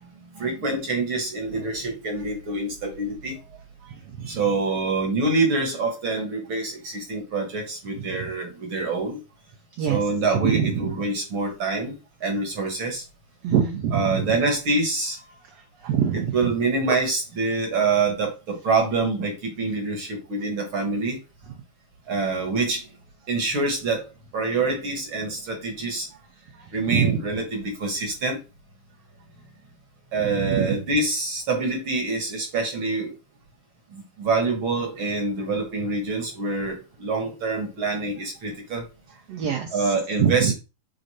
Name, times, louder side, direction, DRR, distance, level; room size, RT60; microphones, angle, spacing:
voice 1, 0.3-3.4 4.3-9.2 9.9-11.9 12.2-13.0 13.9-15.2 16.1-21.2 22.1-22.8 23.3-24.0 24.3-26.1 26.7-28.4 30.1-33.1 33.9-38.9 39.7-40.5, right 3 dB, 50° right, 3 dB, 1.8 m, -26 dB
voice 2, 10.4-10.8 13.4-14.2 15.8-16.3 26.9-27.1 30.3-30.7 39.3-39.7 40.2-40.5, right 8 dB, 70° right, 2 dB, 1.6 m, -23 dB
8.0 x 2.8 x 4.2 m, 0.28 s
omnidirectional pair, 3.8 m